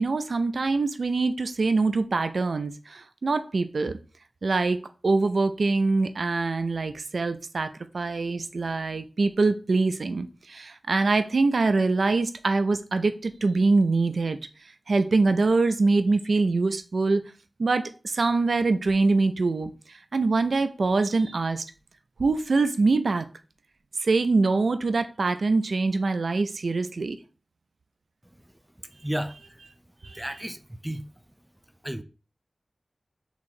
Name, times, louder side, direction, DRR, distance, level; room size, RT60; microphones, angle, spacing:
voice 1, 0.0-3.9 4.4-4.8 5.0-14.4 14.9-17.2 17.6-21.6 22.2-23.3 24.0-27.2 30.0-30.2, right 3 dB, 85° right, 0.4 m, -24 dB
voice 2, 28.8-29.6 30.1-31.1 31.8-32.0, equal, 10° right, 0.4 m, -33 dB
3.6 x 2.9 x 4.2 m
wide cardioid pair, 65°, 0 cm